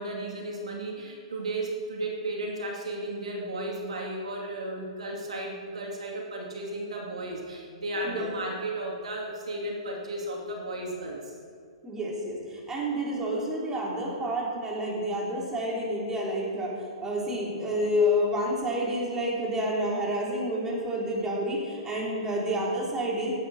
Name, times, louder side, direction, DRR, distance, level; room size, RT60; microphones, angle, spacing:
voice 1, 0.0-11.3, right 1 dB, 80° right, -1 dB, 2.6 m, -34 dB
voice 2, 11.8-16.7 17.0-23.3, equal, 15° right, -4 dB, 3.6 m, -29 dB
18.5 x 8.5 x 4.4 m, 2.1 s
hypercardioid pair, 130°, 3 cm